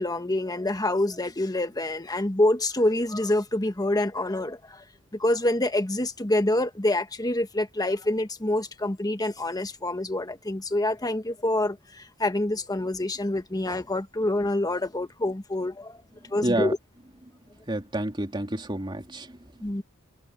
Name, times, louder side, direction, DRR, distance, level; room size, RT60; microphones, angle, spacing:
voice 1, 0.0-4.8 5.1-16.0 16.3-16.8 19.6-19.8, left 1 dB, 15° left, 1.3 m, -26 dB
voice 2, 16.4-16.7 17.7-19.7, right 1 dB, 20° right, 3.1 m, -29 dB
head